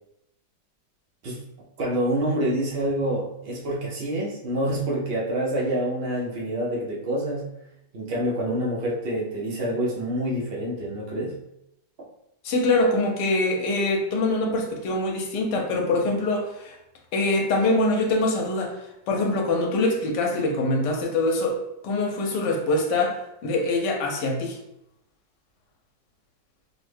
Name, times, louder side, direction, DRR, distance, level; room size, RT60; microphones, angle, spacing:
voice 1, 1.8-7.5 7.9-11.4, right 1 dB, 70° right, -4 dB, 0.5 m, -27 dB
voice 2, 12.4-16.8 17.1-18.7 19.1-21.5 21.8-24.6, left 2 dB, 75° left, 1 dB, 1.2 m, -24 dB
3.3 x 2.1 x 3.2 m, 0.83 s
omnidirectional pair, 1.9 m